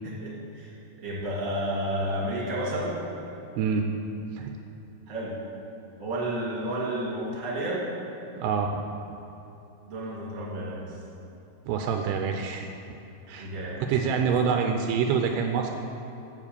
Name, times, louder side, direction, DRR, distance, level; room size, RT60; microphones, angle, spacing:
voice 1, 0.2-0.7 1.0-3.0 5.1-5.4 6.0-7.9 9.9-10.8 13.4-13.8, right 1 dB, 35° right, -5 dB, 1.3 m, -31 dB
voice 2, 8.4-8.8 11.7-12.7 13.3-13.5 13.8-15.7, right 6 dB, 80° right, 4 dB, 2.4 m, -26 dB
7.8 x 7.4 x 6.8 m, 2.9 s
omnidirectional pair, 4.9 m